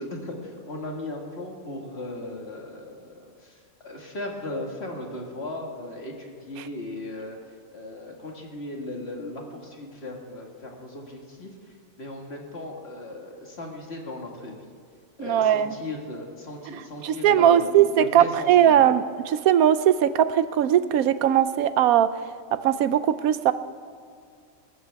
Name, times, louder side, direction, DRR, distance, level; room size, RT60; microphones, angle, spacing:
voice 1, 0.0-3.6 3.8-7.4 7.7-11.5 12.0-14.6 15.2-18.9, left 1 dB, 45° left, 0 dB, 2.1 m, -37 dB
voice 2, 15.2-15.7 17.0-22.1 22.6-23.5, right 10 dB, 90° right, 13 dB, 1.1 m, -19 dB
21.0 x 12.5 x 3.5 m, 2.2 s
omnidirectional pair, 1.5 m